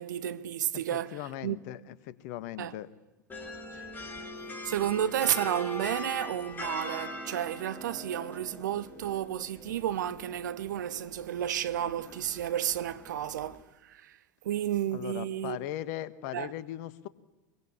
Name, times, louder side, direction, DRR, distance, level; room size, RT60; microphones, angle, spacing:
voice 1, 0.0-1.6 2.6-2.8 3.7-3.9 4.6-14.2 14.4-15.6 16.3-16.5, right 11 dB, 70° right, 1.2 m, -32 dB
voice 2, 1.1-2.9 14.9-17.1, left 13 dB, 60° left, 1.6 m, -38 dB
sound 1, 3.3-13.6, left 2 dB, 20° left, 5.8 m, -42 dB
24.0 x 23.0 x 9.8 m
figure-of-eight pair, 85°, 10 cm